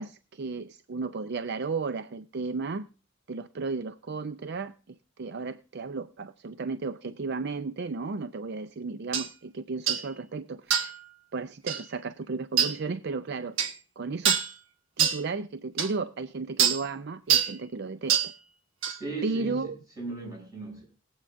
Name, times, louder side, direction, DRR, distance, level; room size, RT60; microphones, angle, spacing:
voice 1, 0.0-2.8 3.3-10.9 11.3-13.6 14.0-14.4 15.0-18.3 19.2-19.8, right 4 dB, 55° right, 0.5 m, -34 dB
sound 1, 9.1-9.3 9.9-10.1 10.7-11.0 11.7-11.8 12.6-12.8 13.6-13.8 14.2-14.5 15.0-15.2 15.8-15.9 16.6-16.8 17.3-17.5 18.1-18.3 18.8-19.0, right 8 dB, 75° right, 1.4 m, -24 dB
voice 2, 19.0-20.8, right 3 dB, 20° right, 7.2 m, -37 dB
21.0 x 8.1 x 2.5 m
head